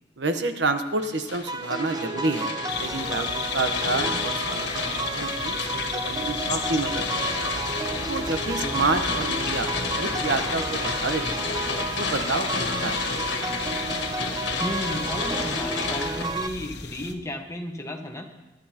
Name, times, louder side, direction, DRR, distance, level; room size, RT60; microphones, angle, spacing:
voice 1, 0.2-2.5 2.8-7.5 8.1-11.6 12.0-12.5 12.8-13.1, right 3 dB, 85° right, 7 dB, 1.0 m, -29 dB
sound 1, 1.0-16.2, left 4 dB, 85° left, 1.5 m, -31 dB
sound 2, 1.5-16.5, right 3 dB, 25° right, 0.6 m, -32 dB
sound 3, 2.7-17.1, left 5 dB, 65° left, 1.2 m, -36 dB
voice 2, 14.6-18.3, left 1 dB, 15° left, 3 dB, 1.3 m, -33 dB
24.0 x 10.0 x 2.9 m, 1.0 s
head